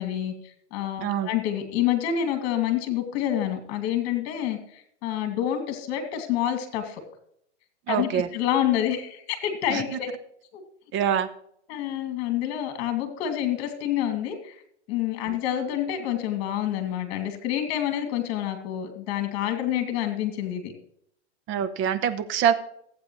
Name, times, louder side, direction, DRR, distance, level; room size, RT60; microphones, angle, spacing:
voice 1, 0.0-7.0 7.9-10.1 10.5-10.6 11.7-14.6 14.9-20.7, left 11 dB, 45° left, 5 dB, 2.4 m, -28 dB
voice 2, 7.9-8.3 9.7-9.8 10.9-11.3 21.5-22.5, right 9 dB, 35° right, 12 dB, 0.9 m, -24 dB
14.5 x 8.5 x 3.1 m, 0.69 s
hypercardioid pair, 125°, 34 cm